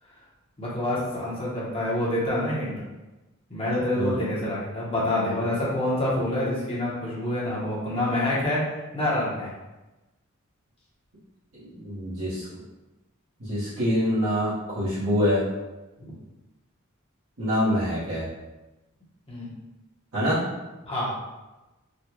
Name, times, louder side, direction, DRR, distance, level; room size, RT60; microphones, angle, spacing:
voice 1, 0.6-2.7 3.5-8.6 8.9-9.5 16.0-16.1 19.3-19.5 20.8-21.1, left 1 dB, 25° left, -7 dB, 0.9 m, -27 dB
voice 2, 11.6-12.5 13.4-15.4 17.4-18.3 20.1-20.4, equal, 70° right, -12 dB, 1.3 m, -25 dB
3.8 x 2.3 x 3.0 m, 1.1 s
head